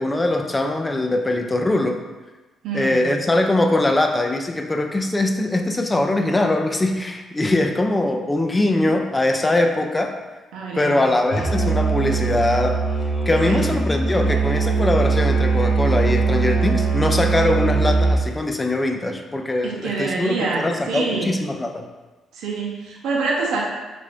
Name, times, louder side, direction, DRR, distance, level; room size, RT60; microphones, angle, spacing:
voice 1, 0.0-2.0 2.7-10.2 10.7-12.9 13.3-21.9, left 2 dB, 20° left, 4 dB, 0.3 m, -21 dB
voice 2, 2.6-3.1 8.8-8.9 10.5-11.0 13.5-13.7 19.6-21.3 22.3-23.6, right 4 dB, 85° right, -2 dB, 0.7 m, -26 dB
Musical instrument, 11.3-18.3, right 4 dB, 50° left, 0.9 m, -21 dB
3.2 x 2.5 x 3.5 m, 1.2 s
cardioid pair, 90°, 0 cm